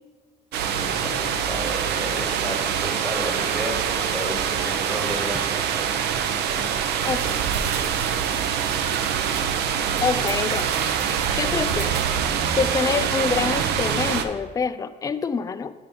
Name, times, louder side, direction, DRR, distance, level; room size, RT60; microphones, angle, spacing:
sound 1, 0.5-14.2, right 8 dB, 75° right, 0.6 m, -24 dB
voice 1, 0.8-6.0 6.5-6.6, equal, 5° right, -4 dB, 2.0 m, -33 dB
voice 2, 7.1-7.4 10.0-10.8 11.1-12.1 12.5-15.7, left 5 dB, 20° left, 11 dB, 0.3 m, -26 dB
9.3 x 3.4 x 5.3 m, 1.3 s
cardioid pair, 110°, 17 cm